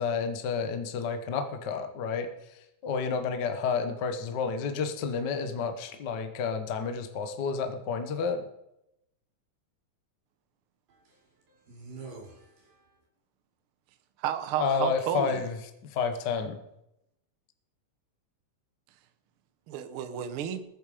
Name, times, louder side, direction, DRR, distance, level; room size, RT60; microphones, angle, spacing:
voice 1, 0.0-8.5 14.6-15.6 15.8-16.6, left 5 dB, 70° left, 7 dB, 1.0 m, -30 dB
voice 2, 10.9-13.0, right 4 dB, 85° right, -2 dB, 4.8 m, -48 dB
voice 3, 14.2-15.4 19.7-20.6, right 9 dB, 70° right, 9 dB, 1.3 m, -32 dB
20.5 x 8.8 x 5.0 m, 0.85 s
omnidirectional pair, 3.8 m